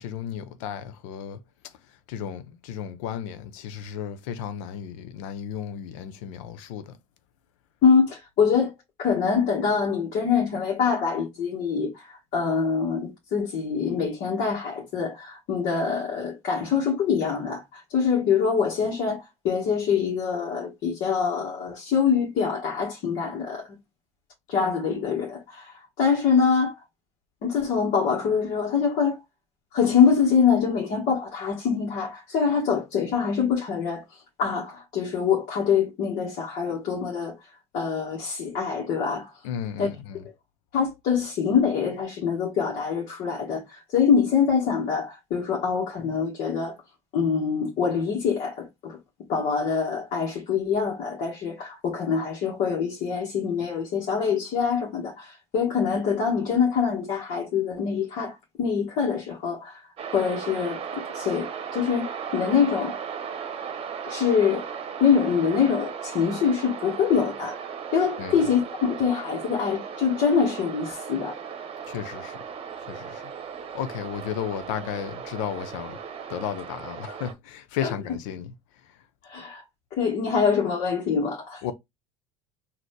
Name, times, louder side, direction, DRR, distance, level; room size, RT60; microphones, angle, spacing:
voice 1, 0.0-1.4 2.1-7.0 39.4-40.2 68.2-68.4 71.9-72.4 72.9-73.3 73.7-76.0 76.3-78.5 81.6-81.7, left 9 dB, 75° left, 0.7 m, -34 dB
voice 2, 7.8-8.7 9.0-23.7 24.5-26.7 27.4-29.2 29.7-34.0 34.4-37.3 37.7-39.3 39.8-39.9 40.7-46.7 47.1-49.0 49.3-59.8 60.1-60.8 61.1-62.9 64.0-64.6 65.0-71.3 77.8-77.9 79.3-79.6 79.9-81.6, left 6 dB, 55° left, 1.6 m, -24 dB
sound 1, 60.0-77.3, right 7 dB, 35° right, 1.0 m, -36 dB
4.0 x 2.9 x 3.2 m
hypercardioid pair, 85°, 16 cm